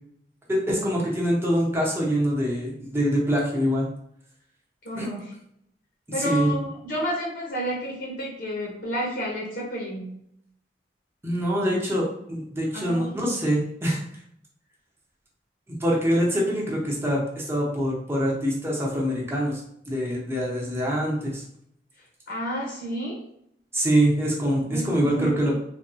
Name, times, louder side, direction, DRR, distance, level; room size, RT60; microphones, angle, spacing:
voice 1, 0.5-3.9 5.0-5.1 6.2-6.5 11.2-14.0 15.7-19.6 19.9-21.4 23.7-25.6, equal, 15° right, -3 dB, 0.8 m, -24 dB
voice 2, 4.8-5.2 6.1-10.2 12.7-13.4 22.3-23.2 24.7-25.6, equal, 65° left, -4 dB, 0.8 m, -31 dB
3.4 x 2.3 x 2.6 m, 0.73 s
head